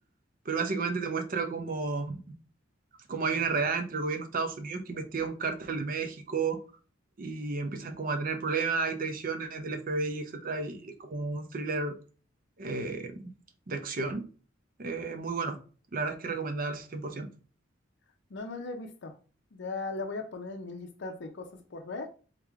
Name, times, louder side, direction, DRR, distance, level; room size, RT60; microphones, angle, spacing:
voice 1, 0.5-2.2 3.1-6.6 7.2-11.9 12.6-13.3 13.7-14.3 14.8-15.6 15.9-17.3, right 4 dB, 45° right, 0.6 m, -32 dB
voice 2, 18.3-19.1 19.5-22.1, left 3 dB, 65° left, 0.5 m, -38 dB
3.7 x 3.3 x 3.4 m
head